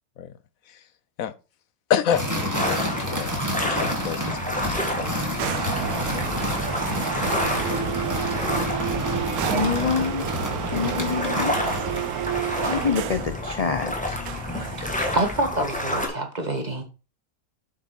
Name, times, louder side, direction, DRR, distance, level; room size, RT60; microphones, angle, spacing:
voice 1, 1.9-2.3 2.6-3.3 3.6-4.4, left 9 dB, 75° left, 1.1 m, -26 dB
sound 1, 2.1-12.1, equal, 10° right, 2.0 m, -29 dB
sound 2, 2.5-16.1, left 1 dB, 5° left, 1.7 m, -30 dB
sound 3, 5.4-13.4 14.2-15.2, right 12 dB, 85° right, 1.1 m, -31 dB
voice 2, 9.5-10.3 10.7-11.8 12.7-14.2, left 6 dB, 35° left, 0.6 m, -26 dB
voice 3, 14.8-16.8, right 1 dB, 30° right, 1.6 m, -27 dB
7.6 x 5.9 x 4.4 m
omnidirectional pair, 1.5 m